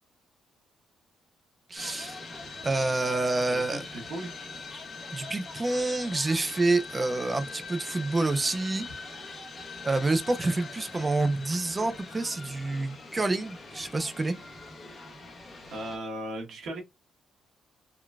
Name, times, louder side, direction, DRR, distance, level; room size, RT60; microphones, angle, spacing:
voice 1, 1.7-2.2 2.6-3.8 5.1-8.9 9.8-14.4, right 2 dB, 25° right, 0.4 m, -28 dB
sound 1, 1.8-16.0, left 3 dB, 45° left, 1.2 m, -42 dB
voice 2, 3.9-4.3 15.7-16.8, right 1 dB, 70° right, 1.2 m, -36 dB
3.7 x 2.2 x 2.3 m
cardioid pair, 90°, 0 cm